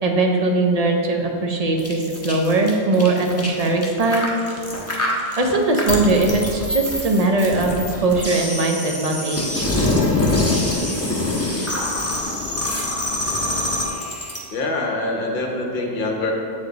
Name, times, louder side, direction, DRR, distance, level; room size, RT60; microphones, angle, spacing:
voice 1, 0.0-4.3 5.4-7.7 8.0-9.7, right 2 dB, 45° right, 2 dB, 0.6 m, -20 dB
sound 1, 1.8-14.4, left 2 dB, 15° left, 0.8 m, -24 dB
voice 2, 14.5-16.3, left 2 dB, 55° left, 1 dB, 1.0 m, -24 dB
7.1 x 4.7 x 3.9 m, 2.7 s
omnidirectional pair, 1.1 m